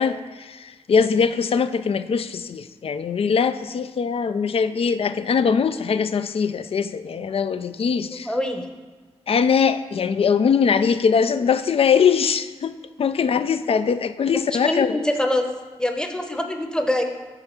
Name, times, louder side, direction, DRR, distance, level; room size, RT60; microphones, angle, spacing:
voice 1, 0.0-8.3 9.3-15.0, left 6 dB, 55° left, 12 dB, 0.4 m, -21 dB
voice 2, 8.1-8.7 13.1-13.3 14.3-15.4 15.8-17.1, left 1 dB, 5° left, 4 dB, 0.9 m, -25 dB
6.8 x 3.5 x 5.9 m, 1.3 s
supercardioid pair, 45°, 12 cm